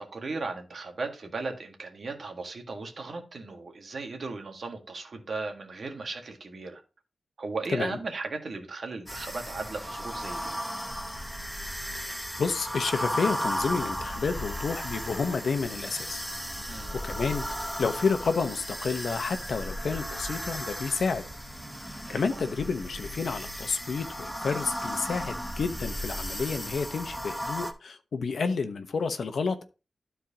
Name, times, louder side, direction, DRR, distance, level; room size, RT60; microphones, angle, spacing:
voice 1, 0.0-6.8 7.4-10.6 16.7-17.0 22.0-22.4, right 3 dB, 55° right, 1.7 m, -36 dB
Distant horror ambient, 9.1-27.7, equal, ahead, 0.8 m, -35 dB
voice 2, 11.9-16.3 17.0-17.5 17.8-21.2 22.1-29.6, left 5 dB, 75° left, 0.9 m, -30 dB
12.5 x 4.6 x 2.9 m
wide cardioid pair, 130°, 0 cm